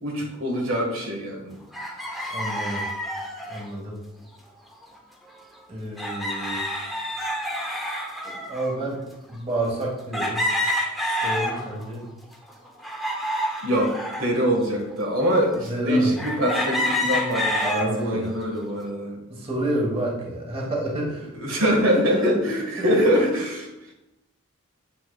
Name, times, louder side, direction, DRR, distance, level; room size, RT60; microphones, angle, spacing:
voice 1, 0.0-1.6 13.6-13.9 14.2-19.2 21.3-23.9, equal, 70° right, 0 dB, 1.5 m, -24 dB
sound 1, 1.7-3.7 4.8-5.0 5.2-5.3 6.0-8.8 9.3-9.4 10.1-11.9 12.3-14.3 14.9-15.0 16.2-17.9 18.4-18.9, left 1 dB, ahead, 0.8 m, -28 dB
voice 2, 2.3-2.8 3.5-4.0 5.7-6.8 8.5-9.0 9.3-10.4 11.2-12.1 15.7-16.1 17.6-18.3 19.3-21.6 21.9-22.0 22.8-23.3, right 1 dB, 30° right, -3 dB, 1.5 m, -29 dB
8.3 x 5.8 x 2.3 m, 0.94 s
head